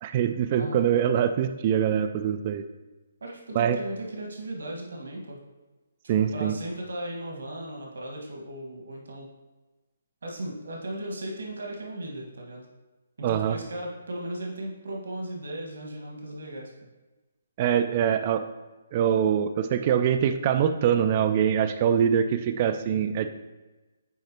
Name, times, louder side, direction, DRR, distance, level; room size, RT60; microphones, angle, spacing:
voice 1, 0.0-2.6 3.5-3.8 6.1-6.5 13.2-13.6 17.6-18.5 18.9-23.3, right 8 dB, 35° right, 9 dB, 0.3 m, -24 dB
voice 2, 0.5-0.9 3.2-5.4 6.0-9.3 10.2-12.6 13.2-16.7, right 1 dB, 70° right, 0 dB, 1.5 m, -36 dB
9.2 x 4.0 x 2.9 m, 1.2 s
figure-of-eight pair, 140°, 0 cm